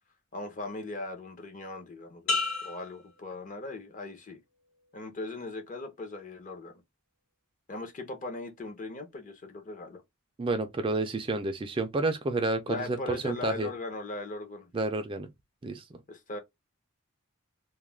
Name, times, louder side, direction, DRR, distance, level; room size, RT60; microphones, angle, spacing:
voice 1, 0.3-4.4 4.9-6.7 7.7-10.0 12.7-14.7 16.1-16.4, left 2 dB, 35° left, 0.7 m, -39 dB
sound 1, 2.3-4.1 4.6-5.0, left 3 dB, 65° left, 1.0 m, -34 dB
voice 2, 10.4-13.7 14.7-15.3 15.6-15.8, right 2 dB, 25° right, 0.3 m, -30 dB
2.3 x 2.1 x 3.2 m
head